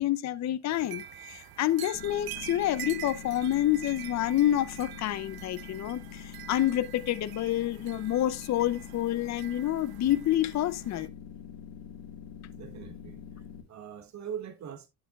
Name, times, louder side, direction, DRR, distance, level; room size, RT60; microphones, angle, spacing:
voice 1, 0.0-11.1, left 13 dB, 40° left, 0.6 m, -28 dB
sound 1, 0.7-11.1, right 11 dB, 55° right, 0.8 m, -45 dB
sound 2, 1.9-13.6, left 7 dB, 70° left, 1.8 m, -45 dB
voice 2, 12.6-14.9, right 8 dB, 35° right, 1.2 m, -42 dB
10.0 x 6.8 x 2.4 m
supercardioid pair, 80°, 45 cm